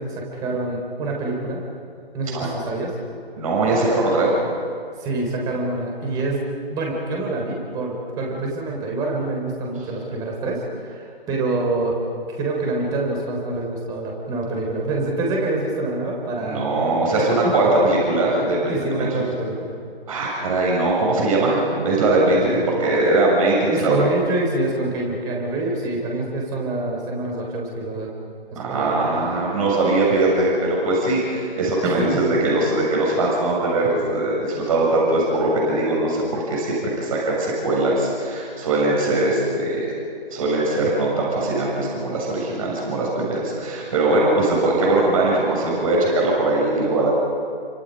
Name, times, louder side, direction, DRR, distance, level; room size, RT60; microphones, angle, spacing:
voice 1, 0.0-1.6 2.1-2.9 5.0-12.0 12.4-16.6 17.2-17.5 18.7-19.7 22.3-22.7 23.7-28.1 28.5-28.9 31.8-32.3, right 2 dB, 10° right, 0 dB, 3.8 m, -26 dB
voice 2, 3.4-4.3 16.4-19.1 20.1-24.0 28.6-39.9 40.3-47.1, right 2 dB, 35° right, -3 dB, 7.1 m, -21 dB
30.0 x 25.0 x 5.4 m, 2.2 s
figure-of-eight pair, 145°, 31 cm